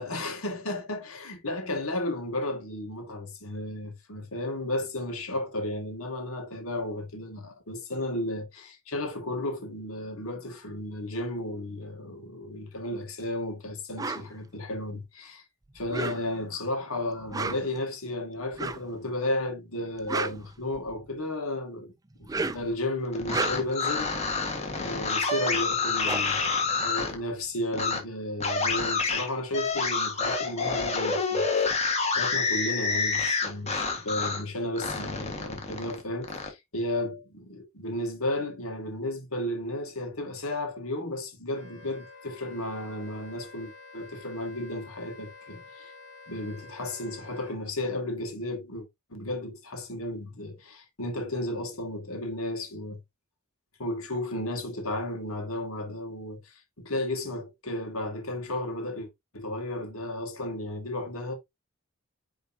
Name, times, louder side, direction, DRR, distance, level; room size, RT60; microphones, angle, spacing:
voice 1, 0.0-15.4 15.7-21.9 22.2-24.1 24.7-31.8 32.1-45.9 46.3-53.0 53.8-61.3, left 1 dB, 90° left, 2.3 m, -33 dB
sound 1, 14.0-14.3 15.8-16.5 17.2-17.8 18.5-18.9 19.8-21.1 22.1-22.7 23.2-23.8 25.4-25.5 25.7-27.4, right 3 dB, 15° right, 0.4 m, -33 dB
sound 2, 23.1-27.1 27.7-28.0 28.4-34.4 34.8-36.5, left 4 dB, 30° left, 1.7 m, -28 dB
Wind instrument woodwind instrument, 41.5-47.6, left 3 dB, 55° left, 3.6 m, -49 dB
9.5 x 3.9 x 2.8 m
head